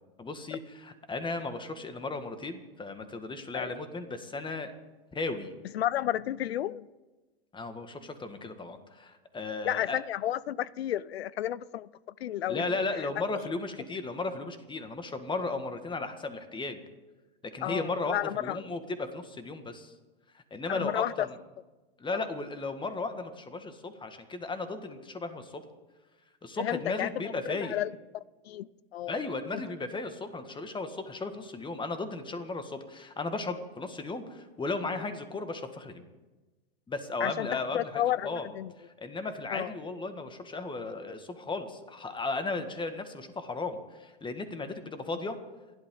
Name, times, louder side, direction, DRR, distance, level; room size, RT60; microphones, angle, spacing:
voice 1, 0.2-4.7 5.1-5.5 7.5-10.0 12.5-16.8 17.5-19.9 20.3-21.4 22.0-25.6 26.4-27.8 29.1-36.1 36.9-38.5 38.8-45.4, left 3 dB, 15° left, 8 dB, 1.9 m, -35 dB
voice 2, 5.7-6.9 9.6-11.9 12.2-12.6 17.6-18.6 20.7-21.3 22.1-22.3 26.6-27.1 27.5-27.9 28.5-29.1 29.5-29.6 37.2-38.7 39.5-39.7, left 12 dB, 85° left, 22 dB, 0.6 m, -32 dB
28.5 x 11.5 x 3.9 m, 1.2 s
hypercardioid pair, 105°, 30 cm